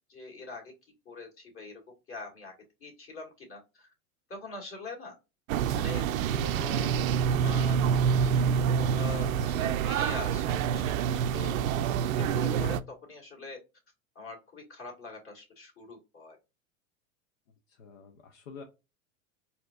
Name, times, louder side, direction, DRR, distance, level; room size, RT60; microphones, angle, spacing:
voice 1, 0.1-0.7 1.1-1.8 2.1-2.5 2.8-3.9 4.3-5.2 5.7-7.8 8.2-11.6 12.0-13.6 14.2-16.4, left 3 dB, 30° left, 0 dB, 2.1 m, -43 dB
sound 1, 5.5-12.8, right 7 dB, 80° right, 0.5 m, -27 dB
voice 2, 11.2-11.6 17.7-18.6, left 5 dB, 70° left, 5 dB, 0.8 m, -49 dB
4.2 x 2.8 x 2.3 m, 0.26 s
hypercardioid pair, 100°, 41 cm